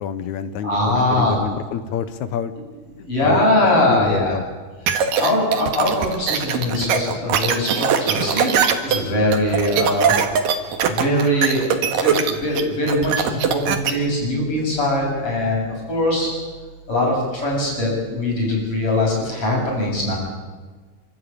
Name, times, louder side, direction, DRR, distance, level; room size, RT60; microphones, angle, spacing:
voice 1, 0.0-2.5 3.2-3.5 3.9-4.4, left 8 dB, 70° left, 12 dB, 2.2 m, -27 dB
voice 2, 0.6-1.4 3.1-4.3 5.1-8.5 8.8-10.1 10.9-16.3 16.9-20.2, left 1 dB, 45° left, -2 dB, 8.4 m, -21 dB
sound 1, 4.9-13.9, right 7 dB, 90° right, 3.2 m, -20 dB
29.5 x 13.5 x 8.7 m, 1.4 s
omnidirectional pair, 3.7 m